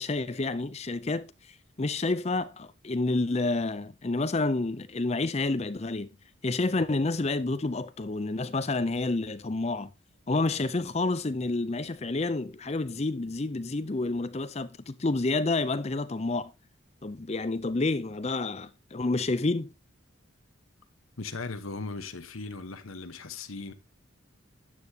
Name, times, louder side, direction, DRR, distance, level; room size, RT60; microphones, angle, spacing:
voice 1, 0.0-6.1 6.4-9.9 10.3-16.5 17.0-19.7, left 2 dB, 30° left, 0.5 m, -29 dB
voice 2, 21.2-23.7, left 3 dB, 85° left, 1.2 m, -38 dB
12.5 x 8.6 x 2.9 m
head